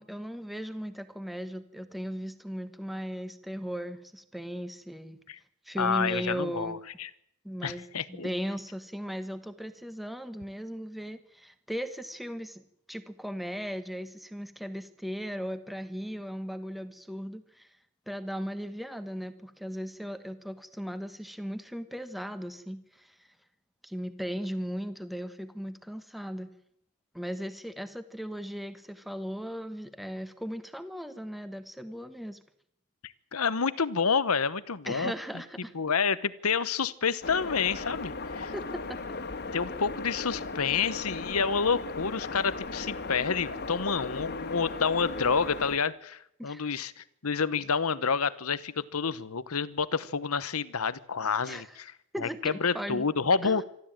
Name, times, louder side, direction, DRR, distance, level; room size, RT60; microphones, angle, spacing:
voice 1, 0.0-5.2 5.6-6.8 7.4-17.7 18.1-23.1 23.8-26.5 27.1-32.4 34.9-35.7 38.5-39.0 46.4-46.6 51.4-51.7 52.1-53.0 53.4-53.6, equal, ahead, 10 dB, 1.4 m, -37 dB
voice 2, 5.8-7.1 7.6-8.3 33.0-35.1 35.7-38.5 39.5-51.9 52.2-53.6, left 5 dB, 75° left, 17 dB, 1.0 m, -29 dB
sound 1, 37.2-45.8, left 3 dB, 50° left, 2.0 m, -37 dB
26.0 x 13.0 x 9.0 m, 0.76 s
head